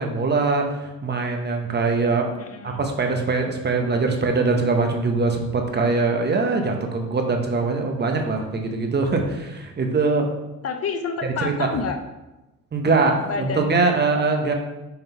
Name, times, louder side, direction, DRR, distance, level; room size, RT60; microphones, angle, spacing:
voice 1, 0.0-2.3 2.6-10.4 11.4-11.7 12.7-14.5, right 3 dB, 35° right, 3 dB, 1.0 m, -22 dB
voice 2, 2.3-2.9 10.6-12.0 13.2-14.5, left 5 dB, 50° left, 7 dB, 0.6 m, -30 dB
5.8 x 3.8 x 4.5 m, 1.0 s
cardioid pair, 90°, 30 cm